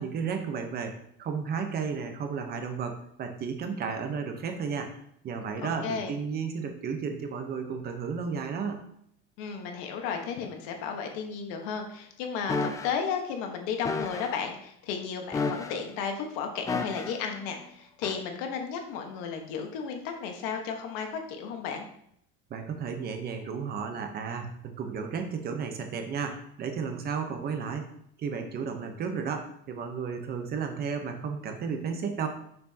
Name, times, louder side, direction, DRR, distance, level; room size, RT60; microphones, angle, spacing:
voice 1, 0.0-4.9 5.2-8.8 22.5-27.9 28.2-32.3, right 6 dB, 30° right, 5 dB, 1.0 m, -33 dB
voice 2, 5.6-6.2 9.4-21.9, left 6 dB, 70° left, 4 dB, 1.4 m, -34 dB
sound 1, 12.5-12.9 13.8-14.3 15.3-15.9 16.7-17.2 18.0-18.2, left 4 dB, 10° left, 0.3 m, -31 dB
6.7 x 6.2 x 2.9 m, 0.70 s
cardioid pair, 155°, 29 cm